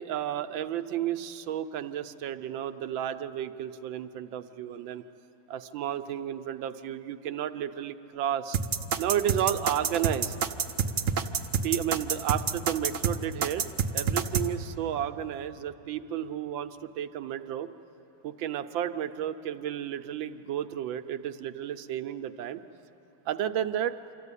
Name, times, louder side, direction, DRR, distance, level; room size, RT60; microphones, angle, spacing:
voice 1, 0.0-5.0 5.5-8.6 9.0-10.4 11.6-13.6 13.9-17.7 18.2-22.6 23.3-23.9, right 10 dB, 80° right, 10 dB, 1.4 m, -32 dB
sound 1, 8.5-14.5, right 6 dB, 55° right, 0.9 m, -27 dB
26.0 x 14.0 x 9.8 m, 2.9 s
omnidirectional pair, 2.1 m